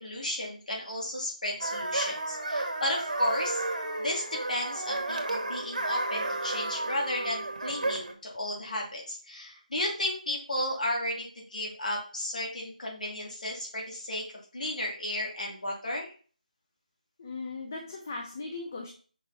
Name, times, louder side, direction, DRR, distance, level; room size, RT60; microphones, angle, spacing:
voice 1, 0.0-3.6 4.0-14.2 14.5-16.1, left 1 dB, 65° left, -2 dB, 2.8 m, -33 dB
sound 1, 1.6-8.1, right 2 dB, 70° right, 1.4 m, -32 dB
voice 2, 17.2-18.9, left 3 dB, 20° left, 2 dB, 0.6 m, -38 dB
5.4 x 4.6 x 4.1 m, 0.40 s
figure-of-eight pair, 175°, 5 cm